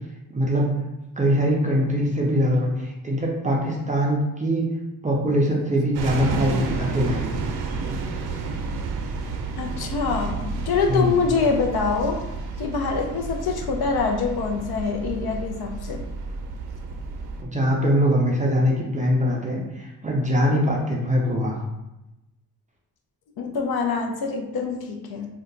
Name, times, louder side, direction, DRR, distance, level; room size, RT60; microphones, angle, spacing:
voice 1, 0.3-0.7 1.2-4.7 5.0-7.3 10.9-11.2 17.4-21.6, equal, 20° right, -2 dB, 0.3 m, -22 dB
sound 1, 5.9-17.4, right 4 dB, 80° right, 0.5 m, -31 dB
voice 2, 9.6-12.2 12.6-16.0 23.4-25.3, left 5 dB, 70° left, 2 dB, 0.6 m, -25 dB
2.7 x 2.2 x 3.8 m, 0.94 s
wide cardioid pair, 175°, 38 cm